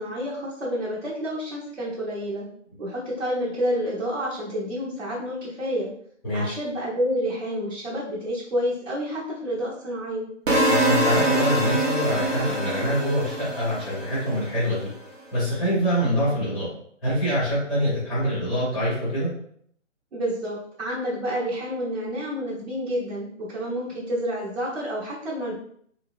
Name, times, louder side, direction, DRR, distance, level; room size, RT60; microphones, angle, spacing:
voice 1, 0.0-2.5 2.8-5.9 6.3-10.3 20.1-25.5, equal, 55° right, -9 dB, 1.2 m, -29 dB
voice 2, 6.2-6.5 10.7-14.9 15.3-16.7 17.0-19.3, equal, ahead, -11 dB, 0.6 m, -25 dB
sound 1, 10.5-14.5, right 1 dB, 75° right, 1.0 m, -24 dB
3.8 x 2.1 x 2.5 m, 0.63 s
figure-of-eight pair, 145°, 38 cm